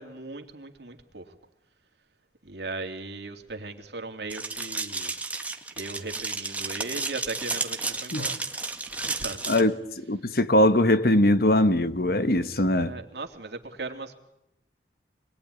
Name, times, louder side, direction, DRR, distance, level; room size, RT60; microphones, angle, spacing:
voice 1, 0.0-1.3 2.4-5.1 5.7-8.4 8.8-9.8 12.8-14.1, right 3 dB, 70° right, 2.9 m, -38 dB
sound 1, 4.3-9.6, right 3 dB, 10° right, 1.8 m, -32 dB
voice 2, 9.5-12.9, left 1 dB, 60° left, 1.3 m, -21 dB
26.5 x 22.0 x 10.0 m
head